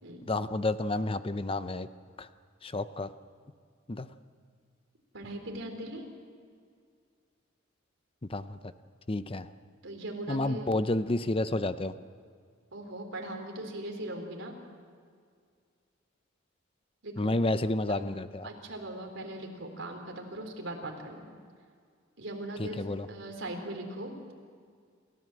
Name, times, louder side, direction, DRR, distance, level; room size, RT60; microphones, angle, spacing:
voice 1, 0.3-1.9 2.2-2.3 2.6-3.1 3.9-4.1 8.3-8.7 9.1-9.5 10.3-12.0 17.2-18.5 22.6-23.1, left 2 dB, 30° left, 12 dB, 0.7 m, -30 dB
voice 2, 5.1-6.1 9.8-10.7 12.7-14.6 17.0-17.4 17.9-18.1 18.4-21.3 22.2-22.8 23.1-24.3, right 1 dB, 70° right, 2 dB, 3.7 m, -39 dB
28.0 x 14.5 x 7.7 m, 2.1 s
head